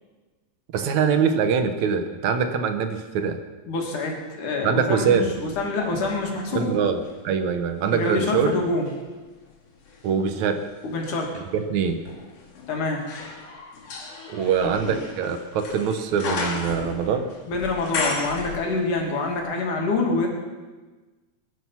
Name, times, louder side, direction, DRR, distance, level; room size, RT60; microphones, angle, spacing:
voice 1, 0.7-3.4 4.6-5.3 6.5-8.5 10.0-10.6 11.5-12.0 14.3-17.3, right 6 dB, 75° right, 7 dB, 2.4 m, -23 dB
voice 2, 3.7-6.7 7.9-8.9 10.8-11.4 12.7-13.0 14.6-15.0 17.5-20.3, left 3 dB, 90° left, 0 dB, 4.0 m, -26 dB
sound 1, 5.0-7.2 7.7-19.1 19.4-19.5, left 3 dB, 55° left, 3.9 m, -35 dB
21.5 x 11.0 x 5.7 m, 1.3 s
omnidirectional pair, 3.4 m